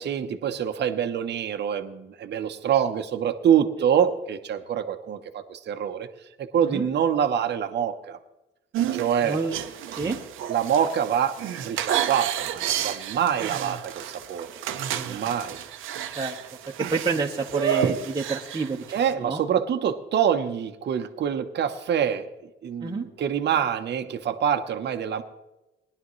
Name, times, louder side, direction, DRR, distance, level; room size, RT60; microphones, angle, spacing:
voice 1, 0.0-6.1 6.4-8.2 8.9-9.4 10.5-14.5 15.0-15.6 18.9-22.3 22.6-25.2, right 8 dB, 60° right, 6 dB, 1.0 m, -25 dB
sound 1, 8.7-19.1, right 10 dB, 90° right, 0.8 m, -31 dB
voice 2, 9.2-9.5 9.9-10.2 14.9-15.3 16.1-16.4 16.7-19.4 22.8-23.1, right 4 dB, 20° right, -1 dB, 1.2 m, -29 dB
19.0 x 11.0 x 3.2 m, 0.97 s
cardioid pair, 90°, 20 cm